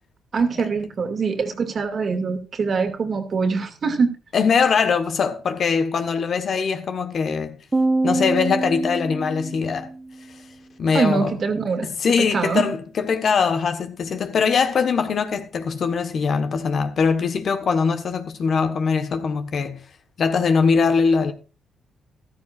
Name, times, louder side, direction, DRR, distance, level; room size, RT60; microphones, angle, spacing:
voice 1, 0.3-4.1 10.9-11.9 12.2-12.7, right 5 dB, 45° right, 2.1 m, -23 dB
voice 2, 4.3-7.6 8.0-9.9 10.8-11.4 11.8-19.8 20.2-21.3, left 5 dB, 55° left, 1.3 m, -22 dB
sound 1, 7.7-10.1, right 2 dB, 20° right, 0.8 m, -25 dB
14.0 x 13.0 x 2.5 m
cardioid pair, 90°, 0 cm